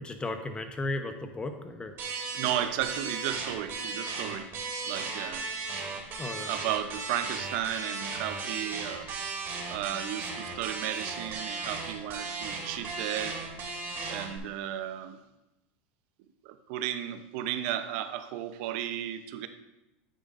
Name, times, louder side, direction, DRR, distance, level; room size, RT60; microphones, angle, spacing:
voice 1, 0.0-1.9 6.2-6.5, left 2 dB, 15° left, 7 dB, 1.0 m, -35 dB
sound 1, 2.0-14.4, right 4 dB, 40° right, 2.7 m, -36 dB
voice 2, 2.3-4.5 4.9-5.4 6.4-9.1 9.7-13.4 14.1-15.2 16.4-19.5, right 11 dB, 65° right, 10 dB, 0.8 m, -34 dB
9.2 x 8.8 x 2.6 m, 0.95 s
supercardioid pair, 115°, 6 cm